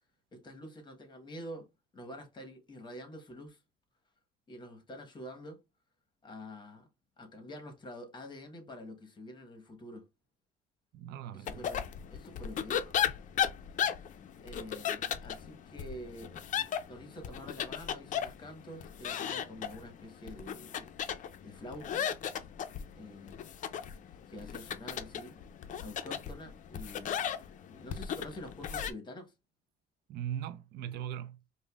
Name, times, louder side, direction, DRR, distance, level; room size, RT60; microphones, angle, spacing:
voice 1, 0.3-1.7 1.9-3.6 4.5-5.6 6.2-6.9 7.2-10.1 11.3-12.9 14.4-21.1 21.4-22.1 23.0-23.4 24.3-25.4 25.7-27.2 27.7-29.3, left 1 dB, 25° left, 1.1 m, -47 dB
voice 2, 10.9-11.6 30.1-31.4, right 10 dB, 75° right, 0.4 m, -39 dB
sound 1, 11.5-28.9, left 9 dB, 50° left, 0.5 m, -36 dB
5.0 x 2.1 x 2.3 m
cardioid pair, 110°, 17 cm